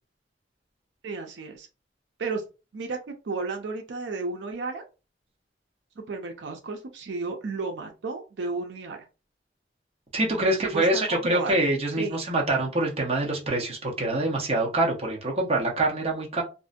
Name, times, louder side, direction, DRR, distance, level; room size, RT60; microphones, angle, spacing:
voice 1, 1.0-1.7 2.2-2.4 2.7-3.0 3.2-4.8 6.0-9.1 10.4-11.6 11.9-12.2, right 3 dB, 80° right, 4 dB, 0.5 m, -33 dB
voice 2, 10.1-16.4, right 2 dB, 35° right, -1 dB, 0.7 m, -25 dB
2.5 x 2.1 x 2.4 m, 0.30 s
head